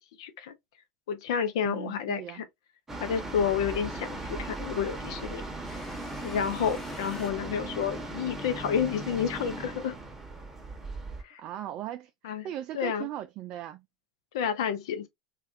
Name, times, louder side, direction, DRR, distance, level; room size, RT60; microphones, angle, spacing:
voice 1, 0.2-0.5 1.1-2.4 3.0-5.4 5.7-5.8 6.2-10.0 11.2-11.4 12.2-12.5 12.7-13.1 14.3-15.1, left 7 dB, 70° left, 0.6 m, -30 dB
voice 2, 1.6-2.4 11.4-12.1 12.4-13.8, right 12 dB, 50° right, 0.3 m, -38 dB
sound 1, 2.9-11.2, right 2 dB, 15° right, 0.9 m, -38 dB
sound 2, 5.6-8.2, left 2 dB, 20° left, 0.8 m, -48 dB
3.2 x 2.4 x 2.4 m
hypercardioid pair, 80°, 3 cm